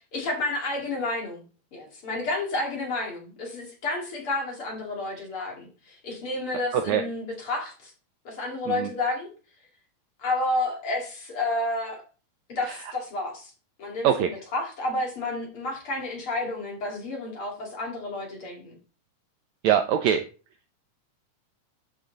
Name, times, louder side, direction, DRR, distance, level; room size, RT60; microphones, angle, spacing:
voice 1, 0.1-1.4 1.7-7.9 8.2-9.3 10.2-12.0 12.5-13.5 13.8-18.8, left 2 dB, 45° left, 0 dB, 3.2 m, -30 dB
voice 2, 6.7-7.0 8.7-8.9 12.7-12.8 14.0-14.3 19.6-20.2, right 9 dB, 80° right, 8 dB, 1.6 m, -23 dB
12.5 x 4.9 x 4.0 m, 0.35 s
omnidirectional pair, 3.8 m